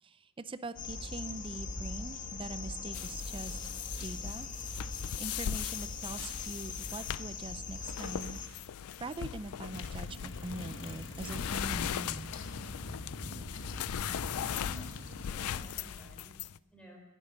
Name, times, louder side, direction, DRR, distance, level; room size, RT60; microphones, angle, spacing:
voice 1, 0.0-3.6 4.0-8.7 9.0-12.3, right 2 dB, 25° right, 13 dB, 0.5 m, -43 dB
sound 1, 0.8-8.5, left 4 dB, 40° left, 1.2 m, -41 dB
sound 2, 2.9-16.6, left 9 dB, 85° left, 0.4 m, -39 dB
sound 3, 9.7-15.7, left 2 dB, 60° left, 1.3 m, -43 dB
voice 2, 14.4-16.3 16.7-17.0, left 1 dB, 5° left, -1 dB, 4.2 m, -52 dB
12.0 x 11.0 x 9.7 m, 1.1 s
head